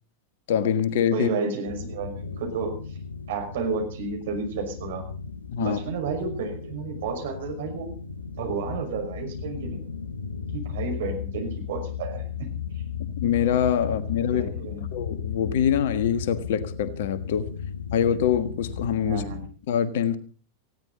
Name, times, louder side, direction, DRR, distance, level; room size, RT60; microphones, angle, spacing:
voice 1, 0.5-1.3 5.5-5.8 13.2-14.5 14.8-17.5 17.9-19.2 19.7-20.2, left 8 dB, 55° left, 1.4 m, -24 dB
voice 2, 1.1-2.7 3.3-5.0 5.6-7.9 8.4-9.8 10.5-12.5 14.3-14.9 19.0-19.4, right 5 dB, 55° right, 5.7 m, -31 dB
sound 1, 1.7-19.5, left 7 dB, 75° left, 1.2 m, -35 dB
19.5 x 16.0 x 4.1 m
figure-of-eight pair, 90°, 0 cm